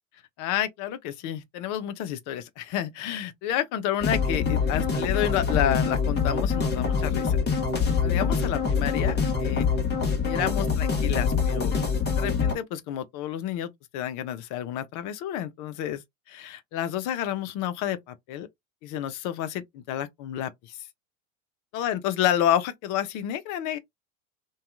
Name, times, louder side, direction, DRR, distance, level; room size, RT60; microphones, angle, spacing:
voice 1, 0.4-7.4 8.0-9.7 10.2-11.7 12.2-16.0 16.3-18.5 18.8-20.8 21.7-23.8, left 11 dB, 50° left, 0.6 m, -30 dB
sound 1, 4.0-12.6, left 5 dB, 25° left, 1.0 m, -25 dB
2.7 x 2.3 x 2.3 m
hypercardioid pair, 80°, 41 cm